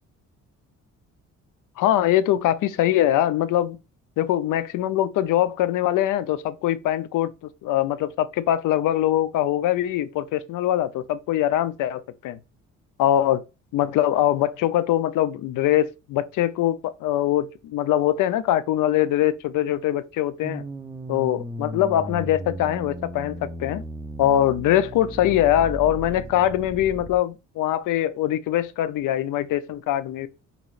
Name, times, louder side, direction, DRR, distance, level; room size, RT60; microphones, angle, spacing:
voice 1, 1.8-3.8 4.2-7.3 7.6-12.4 13.0-13.4 13.7-20.6 21.1-23.8 24.2-30.3, left 12 dB, 85° left, 0.6 m, -22 dB
sound 1, 20.4-27.2, right 1 dB, 10° right, 0.6 m, -36 dB
6.8 x 3.1 x 2.4 m
cardioid pair, 110°, 30 cm